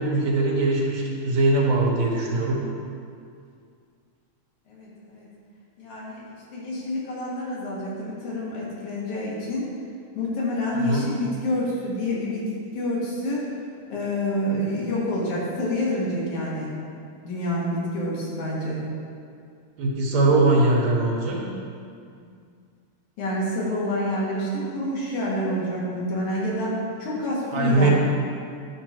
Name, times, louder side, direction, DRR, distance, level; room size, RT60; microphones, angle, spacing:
voice 1, 0.0-2.6 10.7-11.0 19.8-21.4 27.5-27.9, right 2 dB, 65° right, -2 dB, 2.3 m, -21 dB
voice 2, 4.7-5.3 5.8-6.2 6.5-9.6 10.1-12.5 12.7-13.5 13.9-16.7 17.2-18.8 22.2-22.3 23.2-27.9, left 1 dB, 75° left, -6 dB, 3.3 m, -28 dB
11.0 x 5.9 x 4.5 m, 2.3 s
omnidirectional pair, 3.5 m